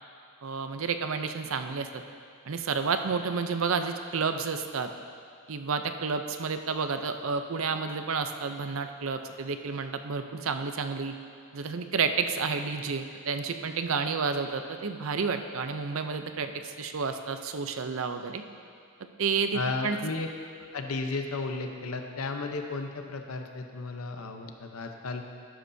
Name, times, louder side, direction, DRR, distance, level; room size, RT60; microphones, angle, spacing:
voice 1, 0.4-2.0 2.5-4.9 5.5-11.1 11.5-18.4 19.2-20.0, right 5 dB, 70° right, 8 dB, 0.6 m, -30 dB
voice 2, 19.5-20.3 20.7-25.3, left 3 dB, 85° left, 4 dB, 0.8 m, -34 dB
12.5 x 11.5 x 2.7 m, 2.3 s
head